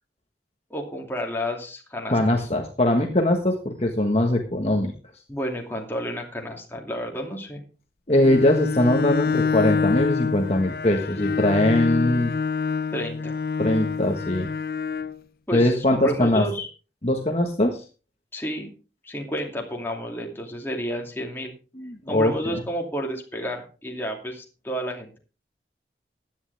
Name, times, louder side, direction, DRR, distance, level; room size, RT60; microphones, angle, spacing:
voice 1, 0.7-2.5 5.3-7.6 12.9-13.4 15.5-16.7 18.3-18.7 19.0-21.5 22.1-25.2, equal, 10° left, 0 dB, 2.6 m, -31 dB
voice 2, 2.1-4.9 8.1-12.3 13.6-14.5 15.5-16.4 17.0-17.8 21.7-22.3, left 1 dB, 35° left, 2 dB, 1.4 m, -21 dB
Bowed string instrument, 8.1-15.2, left 5 dB, 55° left, 0.5 m, -27 dB
15.5 x 11.0 x 3.4 m, 0.34 s
head